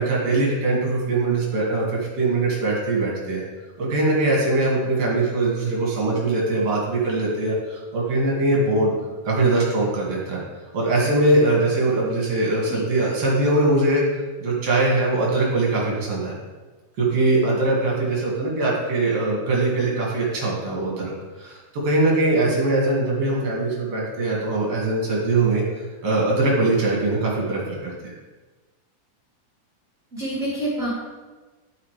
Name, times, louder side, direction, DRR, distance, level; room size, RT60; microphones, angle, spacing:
voice 1, 0.0-3.4 3.8-8.9 9.2-10.4 10.7-14.0 14.4-16.3 17.0-21.1 21.4-27.9, right 2 dB, 45° right, -4 dB, 2.9 m, -22 dB
voice 2, 30.1-30.9, right 1 dB, 25° right, -9 dB, 2.6 m, -27 dB
11.0 x 5.7 x 5.0 m, 1.3 s
omnidirectional pair, 4.3 m